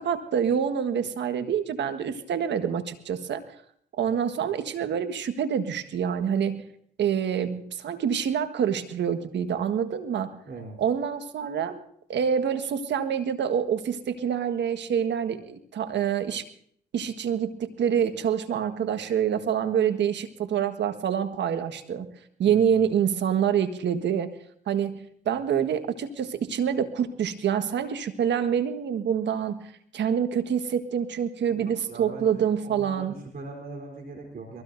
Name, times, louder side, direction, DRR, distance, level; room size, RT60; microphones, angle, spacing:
voice 1, 0.0-3.4 4.0-6.6 7.0-10.3 10.8-11.8 12.1-16.4 16.9-22.1 22.4-24.3 24.7-29.6 29.9-33.1, right 8 dB, 65° right, 8 dB, 1.6 m, -26 dB
voice 2, 10.5-10.8 22.4-22.7 31.5-34.6, right 3 dB, 50° right, 1 dB, 3.8 m, -41 dB
22.5 x 16.5 x 2.7 m, 0.63 s
hypercardioid pair, 50°, 19 cm